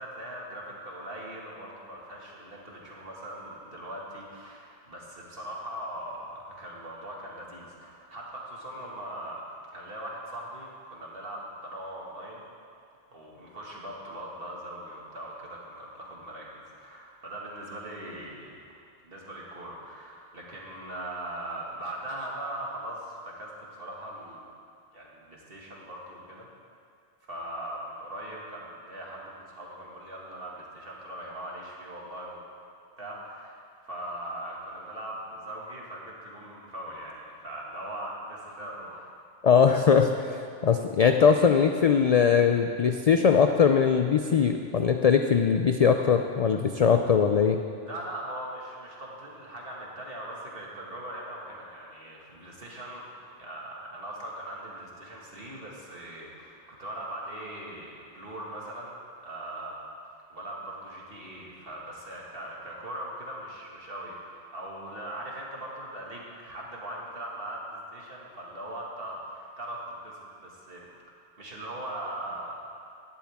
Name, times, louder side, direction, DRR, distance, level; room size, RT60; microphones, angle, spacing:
voice 1, 0.0-12.4 13.1-18.6 19.0-23.5 23.8-24.5 24.9-26.5 27.2-32.4 33.0-39.1 47.8-59.0 59.2-59.8 60.3-70.9 71.4-72.6, right 1 dB, 60° right, -3 dB, 2.3 m, -40 dB
voice 2, 39.4-47.6, left 6 dB, 50° left, 6 dB, 0.5 m, -21 dB
16.0 x 12.0 x 3.6 m, 2.4 s
omnidirectional pair, 1.1 m